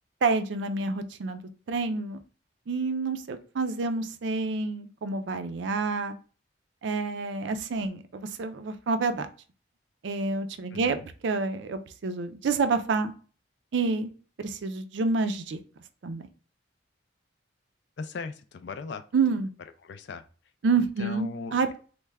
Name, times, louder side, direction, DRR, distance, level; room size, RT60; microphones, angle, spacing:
voice 1, 0.2-1.4 1.7-2.2 2.7-6.1 6.8-9.3 10.0-11.0 11.2-13.1 13.7-14.1 14.4-15.6 16.0-16.2 19.1-19.5 20.6-21.8, right 4 dB, 70° right, 10 dB, 0.4 m, -28 dB
voice 2, 10.7-11.1 18.0-19.0 19.8-20.2 20.8-21.8, left 4 dB, 65° left, 9 dB, 0.4 m, -38 dB
3.2 x 2.1 x 3.4 m, 0.38 s
head